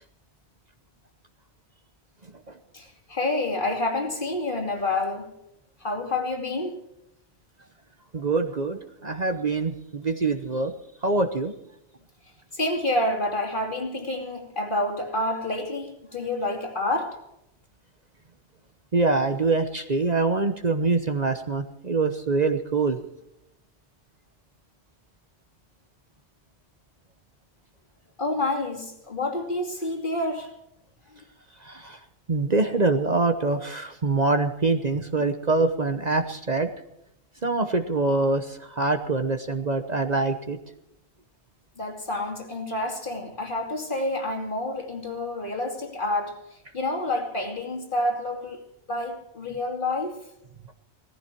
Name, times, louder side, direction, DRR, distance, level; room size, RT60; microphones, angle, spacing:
voice 1, 2.7-5.3 5.8-6.7 12.5-17.2 28.2-30.5 41.8-46.4 46.7-48.6 48.9-50.2, left 2 dB, 50° left, 2.9 m, -28 dB
voice 2, 8.1-10.7 11.0-11.5 18.9-23.0 31.6-32.0 32.3-36.7 37.4-40.6, right 3 dB, 40° right, 1.0 m, -24 dB
18.5 x 14.5 x 4.5 m
omnidirectional pair, 1.1 m